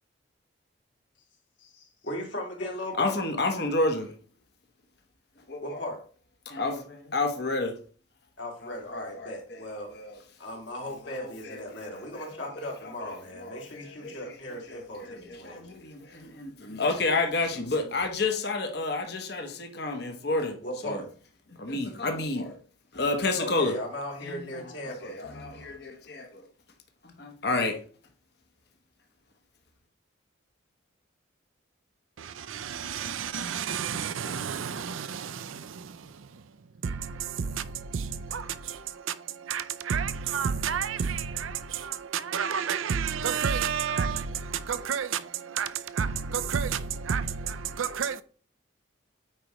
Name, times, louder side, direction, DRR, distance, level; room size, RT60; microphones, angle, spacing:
voice 1, 1.6-3.2 5.6-6.0 8.4-9.9 10.4-15.6 20.6-21.1 23.4-25.1, left 1 dB, 70° left, 2.4 m, -37 dB
voice 2, 3.0-4.1 5.5-5.8 6.5-7.8 8.6-9.6 9.9-10.2 11.2-12.2 12.5-14.2 14.7-21.0 21.5-22.6 22.9-23.7 24.2-26.4 27.0-27.8, left 3 dB, 55° left, 1.0 m, -31 dB
voice 3, 32.2-36.5 36.8-48.2, right 7 dB, 90° right, 0.5 m, -31 dB
8.9 x 4.9 x 3.1 m
head